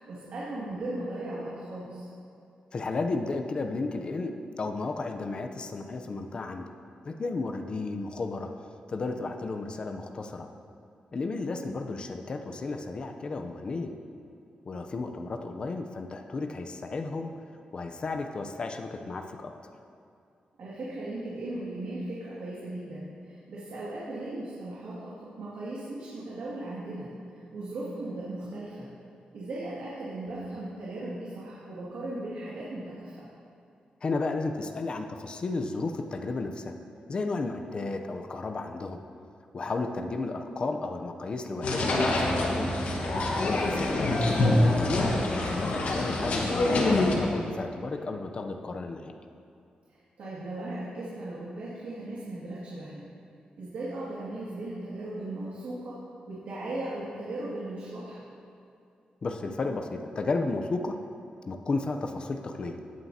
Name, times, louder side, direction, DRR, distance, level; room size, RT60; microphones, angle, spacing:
voice 1, 0.1-2.1 20.6-28.9 29.3-33.3 49.9-53.1 53.6-58.2, right 2 dB, 75° right, -8 dB, 2.1 m, -37 dB
voice 2, 2.7-6.7 7.0-8.5 8.9-10.5 11.1-13.9 14.7-17.3 17.7-19.5 34.0-36.7 37.1-39.0 39.5-42.7 43.5-45.2 45.6-49.1 59.2-61.1 61.5-62.8, left 3 dB, 35° left, 5 dB, 0.6 m, -33 dB
sound 1, 41.6-47.2, left 2 dB, 60° left, 1.4 m, -25 dB
17.0 x 9.1 x 2.8 m, 2.6 s
wide cardioid pair, 160°, 3 cm